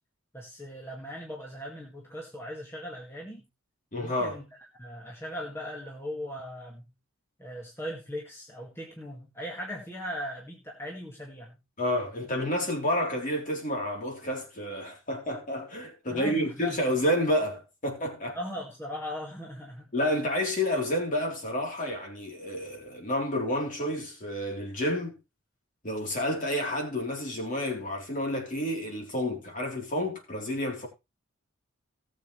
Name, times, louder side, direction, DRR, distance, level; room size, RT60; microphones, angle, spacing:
voice 1, 0.3-3.4 4.0-4.5 4.8-6.8 7.4-11.6 16.1-16.8 18.3-19.9, equal, 10° left, 2.1 m, -39 dB
voice 2, 3.9-4.4 11.8-18.4 19.9-25.2 25.8-30.9, left 1 dB, 40° left, 3.8 m, -30 dB
19.0 x 7.6 x 3.3 m
head